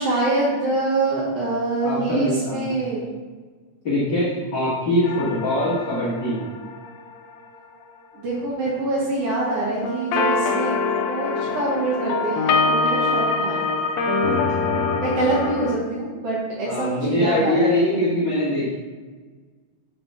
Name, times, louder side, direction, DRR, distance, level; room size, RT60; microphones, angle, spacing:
voice 1, 0.0-3.0 8.1-10.8 11.0-13.7 14.9-17.8, right 2 dB, 60° right, -7 dB, 1.9 m, -25 dB
voice 2, 1.8-2.8 3.8-6.4 14.2-14.3 14.6-14.9 16.7-18.7, left 1 dB, 45° left, -9 dB, 1.7 m, -23 dB
sound 1, 5.0-7.1 9.8-15.8, left 4 dB, 75° left, 1.8 m, -24 dB
5.4 x 4.1 x 5.8 m, 1.4 s
omnidirectional pair, 3.5 m